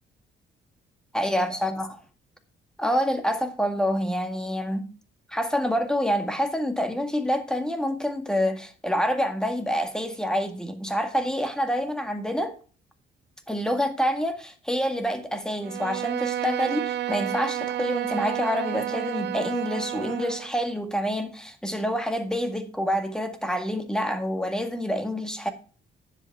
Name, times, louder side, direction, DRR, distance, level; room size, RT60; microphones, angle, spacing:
voice 1, 1.1-1.9 2.8-4.8 5.3-12.5 13.5-25.5, equal, 5° left, 1.8 m, -27 dB
Bowed string instrument, 15.6-20.6, right 12 dB, 60° right, 0.7 m, -30 dB
10.0 x 8.0 x 4.7 m
cardioid pair, 90°, 20 cm